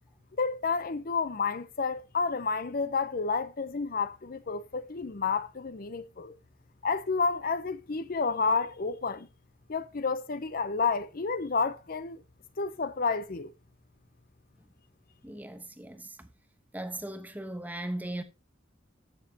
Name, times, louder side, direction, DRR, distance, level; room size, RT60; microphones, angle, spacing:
voice 1, 0.4-6.3 6.8-9.3 9.7-12.2 12.6-13.5, left 4 dB, 50° left, 0.6 m, -30 dB
voice 2, 15.2-16.3 16.7-18.2, right 1 dB, 10° right, 1.0 m, -38 dB
14.5 x 6.6 x 2.8 m
head